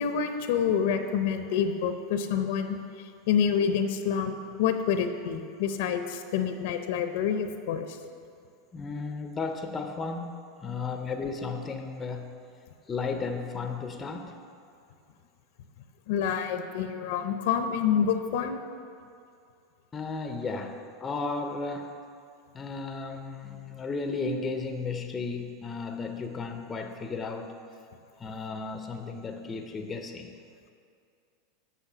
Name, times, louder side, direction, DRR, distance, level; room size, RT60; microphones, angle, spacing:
voice 1, 0.0-8.0 16.1-18.6, left 7 dB, 65° left, 7 dB, 0.6 m, -28 dB
voice 2, 8.7-12.3 12.9-14.4 19.9-22.0 22.5-27.5 28.2-30.4, left 4 dB, 15° left, 5 dB, 0.5 m, -34 dB
8.3 x 5.6 x 7.1 m, 2.4 s
supercardioid pair, 165°, 0 cm